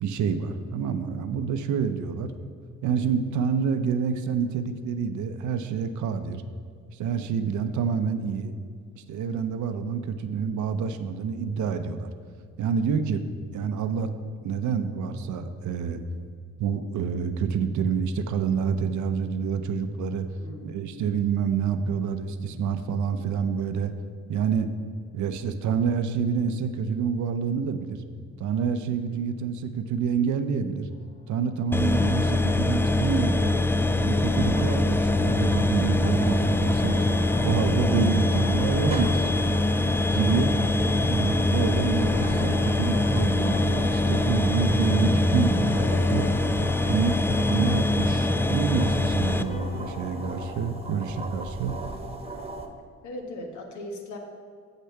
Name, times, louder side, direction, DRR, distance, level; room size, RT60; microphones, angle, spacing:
voice 1, 0.0-2.3 2.8-6.4 6.9-8.5 9.0-12.1 12.6-14.1 14.4-16.0 16.6-20.3 20.6-23.9 24.3-24.7 25.1-28.0 28.4-30.9 31.3-33.5 34.0-37.1 37.4-39.3 40.1-40.5 41.0-46.3 46.9-47.2 47.5-51.7, right 6 dB, 70° right, 9 dB, 0.7 m, -27 dB
voice 2, 20.4-21.0 53.0-54.2, left 1 dB, 75° left, 2 dB, 1.5 m, -39 dB
sound 1, 30.9-41.9 42.2-43.4 45.8-50.6, left 4 dB, 25° left, 0.7 m, -45 dB
sound 2, 31.7-49.4, left 2 dB, 10° left, 0.3 m, -23 dB
sound 3, 34.2-52.7, right 2 dB, 20° right, 1.1 m, -40 dB
7.5 x 6.7 x 5.8 m, 2.1 s
cardioid pair, 90°, 30 cm